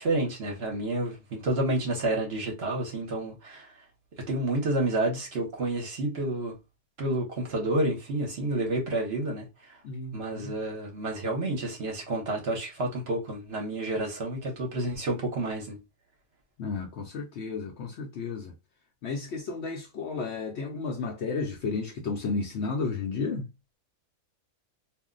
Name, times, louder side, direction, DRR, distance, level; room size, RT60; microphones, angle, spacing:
voice 1, 0.0-3.7 4.3-6.5 7.0-9.8 10.1-15.8, right 1 dB, 50° right, 1.0 m, -29 dB
voice 2, 9.8-10.5 16.6-18.5 19.0-23.5, left 4 dB, 65° left, 0.7 m, -33 dB
2.5 x 2.1 x 3.6 m
omnidirectional pair, 1.5 m